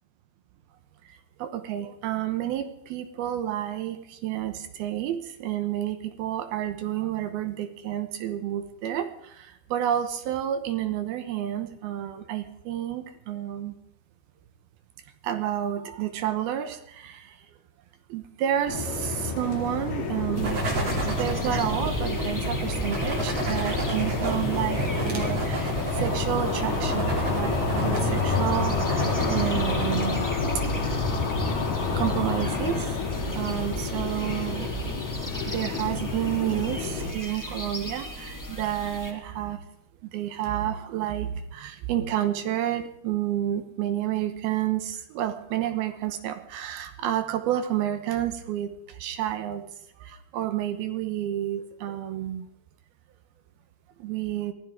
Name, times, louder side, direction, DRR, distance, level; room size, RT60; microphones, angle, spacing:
voice 1, 1.4-13.8 15.2-17.4 18.1-20.6 21.0-30.3 30.7-31.0 32.0-33.0 33.3-34.7 35.4-39.6 40.1-49.6 50.0-52.5 54.0-54.5, right 11 dB, 75° right, 8 dB, 2.7 m, -30 dB
sound 1, 18.7-37.1, left 4 dB, 70° left, 5.3 m, -29 dB
sound 2, 20.3-39.1, right 1 dB, 20° left, 0.5 m, -37 dB
sound 3, 20.4-30.1, right 1 dB, 40° right, 3.5 m, -30 dB
23.0 x 15.5 x 3.7 m, 0.76 s
omnidirectional pair, 4.7 m